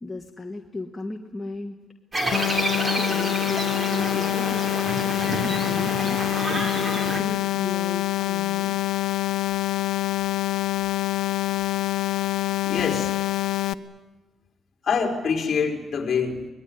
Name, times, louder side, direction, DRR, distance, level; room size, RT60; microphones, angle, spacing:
voice 1, 0.0-1.8 2.9-4.6 5.0-5.2 5.4-6.2 6.7-8.8, left 2 dB, 15° left, 1 dB, 1.5 m, -36 dB
sound 1, 2.1-7.2, right 1 dB, 25° right, 3.6 m, -29 dB
sound 2, 2.3-13.7, left 15 dB, 80° left, 0.7 m, -25 dB
voice 2, 12.6-13.1 14.8-16.5, left 5 dB, 45° left, 1 dB, 4.5 m, -25 dB
25.0 x 20.5 x 9.5 m, 1.2 s
cardioid pair, 130°, 0 cm